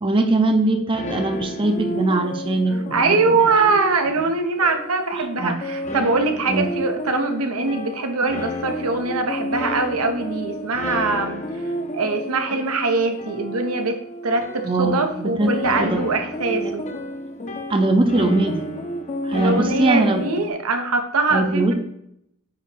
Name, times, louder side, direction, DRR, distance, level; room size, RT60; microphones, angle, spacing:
voice 1, 0.0-3.4 5.1-5.6 6.5-6.7 14.6-15.5 15.8-16.0 16.6-16.7 17.7-18.7 19.2-20.3 21.3-21.7, right 2 dB, 25° right, 6 dB, 0.5 m, -21 dB
sound 1, 0.9-20.5, equal, 30° left, 0.6 m, -31 dB
voice 2, 2.9-11.4 11.9-14.0 14.2-14.5 14.8-16.9 19.3-21.7, right 3 dB, 90° right, 6 dB, 0.9 m, -22 dB
8.8 x 3.0 x 4.5 m, 0.76 s
head